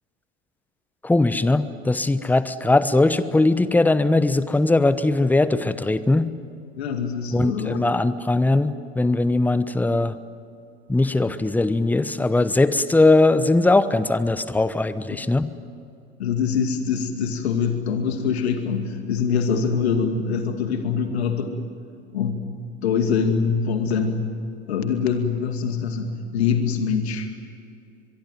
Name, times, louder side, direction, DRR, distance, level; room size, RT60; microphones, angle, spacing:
voice 1, 1.0-6.3 7.3-10.2 10.9-15.5, left 2 dB, 5° left, 14 dB, 1.0 m, -20 dB
voice 2, 6.8-7.8 15.1-15.2 16.2-21.6 22.1-22.5 22.8-24.3 24.7-27.3, left 6 dB, 70° left, 6 dB, 2.4 m, -24 dB
23.5 x 23.5 x 9.2 m, 2.5 s
figure-of-eight pair, 85°, 33 cm